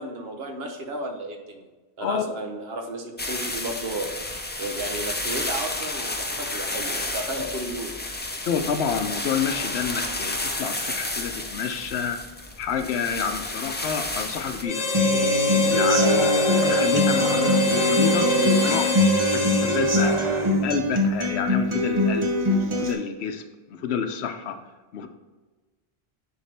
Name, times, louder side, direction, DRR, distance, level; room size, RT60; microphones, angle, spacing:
voice 1, 0.0-1.7 2.0-4.1 4.6-7.9 16.0-16.4, right 1 dB, 70° right, 3 dB, 1.1 m, -33 dB
sound 1, 3.2-14.6, left 2 dB, 15° left, 0.3 m, -31 dB
voice 2, 8.5-12.2 12.6-14.9 15.7-16.3 16.6-19.0 19.3-20.2 20.6-22.4 22.7-23.4 23.7-24.6 24.9-25.1, left 7 dB, 80° left, 7 dB, 0.9 m, -29 dB
Harmonica, 14.6-20.6, left 2 dB, 40° left, 0.7 m, -24 dB
Human voice / Acoustic guitar, 14.9-22.9, left 1 dB, 30° right, 0.7 m, -23 dB
9.3 x 3.6 x 3.3 m, 1.3 s
omnidirectional pair, 1.1 m